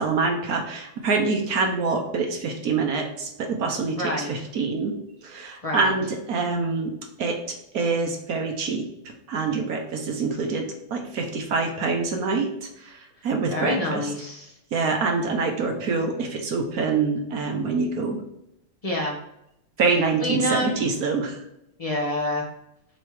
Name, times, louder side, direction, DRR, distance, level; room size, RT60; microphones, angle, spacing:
voice 1, 0.0-4.9 5.2-6.9 7.2-14.1 14.7-18.2 19.8-21.4, right 4 dB, 55° right, 3 dB, 1.1 m, -26 dB
voice 2, 4.0-4.3 5.6-5.9 13.5-14.5 18.8-19.2 20.2-20.8 21.8-22.5, left 1 dB, 30° left, -2 dB, 0.6 m, -27 dB
7.7 x 3.2 x 4.7 m, 0.83 s
omnidirectional pair, 2.4 m